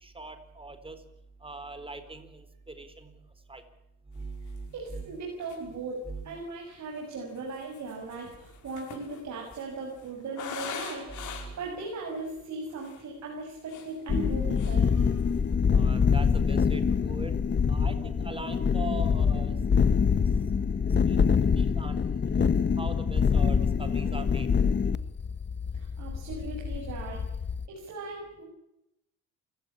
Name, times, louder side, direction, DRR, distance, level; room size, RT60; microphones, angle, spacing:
voice 1, 0.0-1.0 1.4-3.1 3.5-3.6 4.2-5.0 6.1-6.2 11.1-11.5 15.7-17.3 17.7-19.5 21.1-21.3 21.6-22.4 22.8-24.5, right 2 dB, 20° right, 10 dB, 4.3 m, -41 dB
sound 1, 4.6-4.7 5.1-5.2 5.4-5.9 6.7-11.7 12.3-12.4 12.7-13.0 13.5-14.3 14.6-14.9 15.2-15.5, left 8 dB, 80° left, 5.4 m, -43 dB
voice 2, 4.7-15.2 25.7-27.2 27.7-28.4, right 3 dB, 65° right, -1 dB, 6.9 m, -38 dB
sound 2, 14.1-27.7, left 6 dB, 35° left, 1.3 m, -25 dB
28.0 x 17.0 x 8.8 m, 0.87 s
cardioid pair, 90°, 30 cm